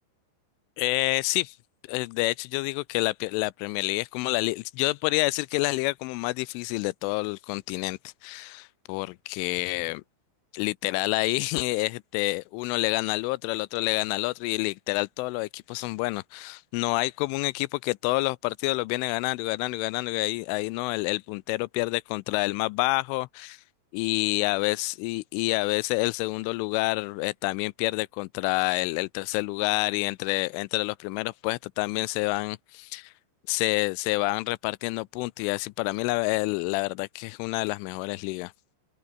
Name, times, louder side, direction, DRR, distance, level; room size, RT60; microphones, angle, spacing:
voice 1, 0.8-1.6 1.9-10.0 10.5-23.6 23.9-33.1 33.5-38.5, left 23 dB, 85° left, 3.1 m, -28 dB
open air
omnidirectional pair, 5.5 m